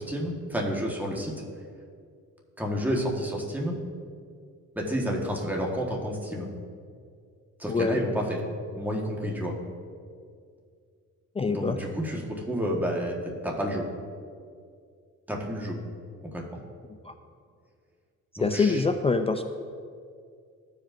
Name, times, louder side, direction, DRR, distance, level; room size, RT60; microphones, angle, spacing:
voice 1, 0.0-1.3 2.6-3.7 4.7-6.5 7.6-8.4 8.8-9.6 11.4-13.2 13.4-13.9 15.3-15.8 16.2-16.4 18.4-18.9, equal, 5° right, -2 dB, 1.4 m, -30 dB
voice 2, 11.4-11.8 18.4-19.4, left 4 dB, 20° left, 6 dB, 0.3 m, -24 dB
15.0 x 5.0 x 2.6 m, 2.2 s
cardioid pair, 90°, 30 cm